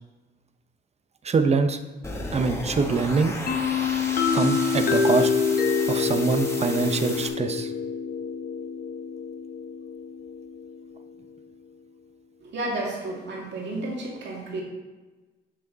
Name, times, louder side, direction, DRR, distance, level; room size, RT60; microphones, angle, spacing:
voice 1, 1.2-1.8 2.3-3.3 4.3-5.3 5.9-7.7, right 4 dB, 35° right, 8 dB, 0.7 m, -24 dB
sound 1, 2.0-7.3, left 1 dB, 15° left, 1.5 m, -35 dB
sound 2, 3.5-11.1, left 5 dB, 50° left, 1.0 m, -26 dB
voice 2, 12.4-14.6, right 2 dB, 60° right, -2 dB, 2.3 m, -32 dB
7.8 x 5.7 x 4.0 m, 1.3 s
cardioid pair, 90°, 20 cm